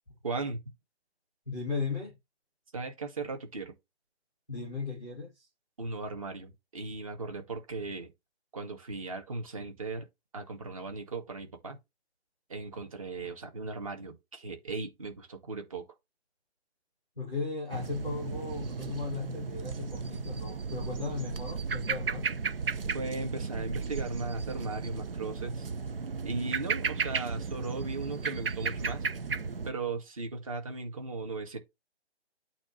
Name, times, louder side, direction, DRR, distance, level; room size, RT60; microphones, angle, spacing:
voice 1, 0.2-0.6 2.7-3.7 5.8-8.1 8.5-10.1 10.3-11.8 12.5-15.8 22.9-25.7 26.2-29.1 29.7-31.6, right 3 dB, 30° right, 2.0 m, -37 dB
voice 2, 1.5-2.2 4.5-5.5 17.2-22.3, left 4 dB, 5° right, 0.9 m, -36 dB
sound 1, 17.7-29.7, right 5 dB, 55° right, 0.8 m, -34 dB
8.6 x 3.0 x 5.8 m
hypercardioid pair, 175°, 34 cm